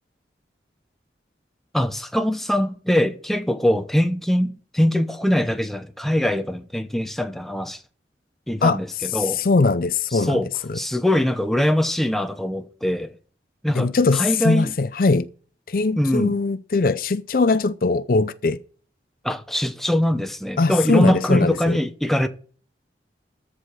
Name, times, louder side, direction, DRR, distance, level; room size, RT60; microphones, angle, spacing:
voice 1, 1.7-7.8 8.5-9.4 10.1-10.5 10.7-13.1 13.6-14.7 16.0-16.4 19.2-22.3, left 1 dB, ahead, 0.8 m, -22 dB
voice 2, 9.4-10.4 10.7-10.8 13.8-15.3 15.7-18.6 20.6-21.8, left 3 dB, 50° left, 0.5 m, -20 dB
14.0 x 4.9 x 7.5 m
head